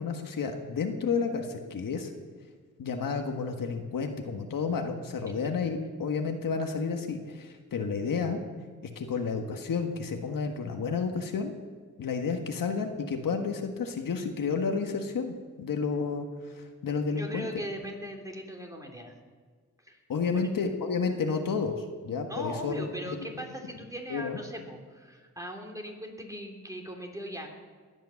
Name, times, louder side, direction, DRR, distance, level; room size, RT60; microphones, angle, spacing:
voice 1, 0.0-2.1 2.8-8.4 8.9-11.5 12.0-16.3 16.6-17.5 20.1-23.3 24.1-24.4, left 5 dB, 85° left, 4 dB, 1.7 m, -31 dB
voice 2, 17.1-19.1 19.8-20.0 20.3-20.5 22.3-27.5, equal, 10° right, 1 dB, 3.2 m, -39 dB
21.0 x 9.2 x 7.1 m, 1.5 s
cardioid pair, 80°, 33 cm